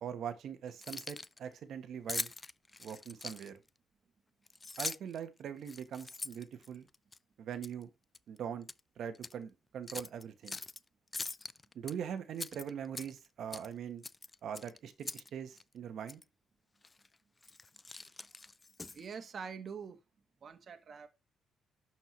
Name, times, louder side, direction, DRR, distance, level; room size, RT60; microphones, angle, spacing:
voice 1, 0.0-2.3 2.8-3.5 4.8-6.9 7.4-7.9 8.3-8.7 9.0-10.6 11.7-14.0 14.4-16.2, right 8 dB, 70° right, 1.1 m, -42 dB
Keys jangling, 0.7-1.4 2.1-3.7 4.5-5.2 5.6-7.2 7.6-7.8 8.1-8.8 9.1-9.3 9.9-10.8 11.1-11.9 12.3-13.3 13.5-13.7 14.0-15.3 15.6-15.7 16.1-16.2 16.8-17.1 17.4-19.1, left 3 dB, 20° left, 0.3 m, -42 dB
voice 2, 18.9-20.0 20.4-21.1, right 6 dB, 50° right, 1.3 m, -44 dB
12.0 x 4.5 x 3.2 m
cardioid pair, 90°, 0 cm